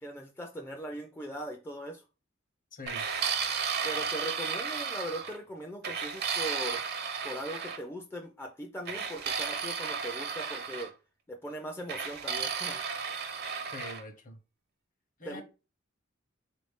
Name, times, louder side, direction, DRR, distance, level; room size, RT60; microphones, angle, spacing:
voice 1, 0.0-2.0 3.8-6.8 7.2-10.9 11.3-12.8 15.2-15.4, right 1 dB, 10° left, 0.3 m, -40 dB
voice 2, 2.7-3.0 13.7-14.4 15.2-15.4, left 2 dB, 40° left, 0.7 m, -43 dB
sound 1, 2.9-5.4 5.8-7.8 8.9-10.9 11.9-14.0, right 6 dB, 55° right, 0.5 m, -33 dB
3.4 x 2.6 x 3.5 m
head